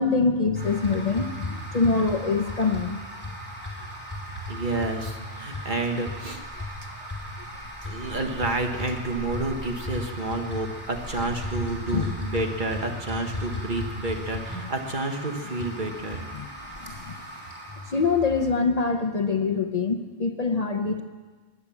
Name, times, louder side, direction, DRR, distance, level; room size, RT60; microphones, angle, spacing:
voice 1, 0.0-3.7 6.9-7.0 11.9-12.1 16.3-16.5 16.8-17.1 17.8-21.0, left 4 dB, 40° left, 5 dB, 0.8 m, -25 dB
sound 1, 0.6-18.5, left 1 dB, 10° left, 4.2 m, -36 dB
voice 2, 4.5-6.4 7.8-16.2, right 2 dB, 45° right, 3 dB, 1.6 m, -29 dB
19.5 x 9.8 x 7.1 m, 1.4 s
omnidirectional pair, 1.1 m